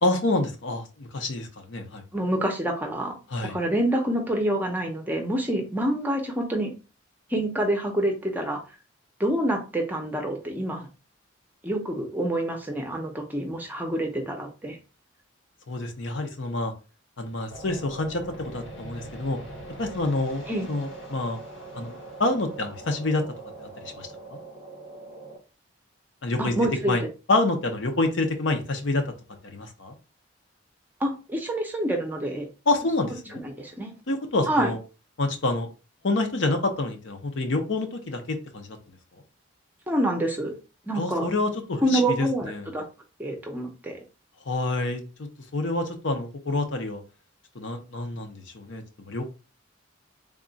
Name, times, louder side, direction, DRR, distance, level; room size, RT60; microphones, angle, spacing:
voice 1, 0.0-2.0 3.3-3.6 15.7-16.7 17.2-19.4 19.8-21.4 21.7-23.2 23.8-24.4 26.2-26.5 26.9-27.0 27.3-29.0 29.4-30.0 32.7-33.4 34.1-34.8 35.2-35.7 36.0-38.8 41.0-42.7 44.5-47.0 47.5-49.3, left 2 dB, 65° left, 5 dB, 0.7 m, -27 dB
voice 2, 2.1-3.1 3.5-6.7 7.3-8.6 9.2-10.9 11.6-14.8 20.5-20.7 26.4-27.1 31.0-32.5 33.4-33.9 34.5-34.7 39.9-40.6 40.9-41.3 41.8-42.9 43.2-44.0, right 1 dB, 10° right, 2 dB, 0.6 m, -27 dB
sound 1, 17.5-25.4, right 2 dB, 85° left, 1.3 m, -42 dB
3.6 x 2.3 x 3.9 m, 0.32 s
head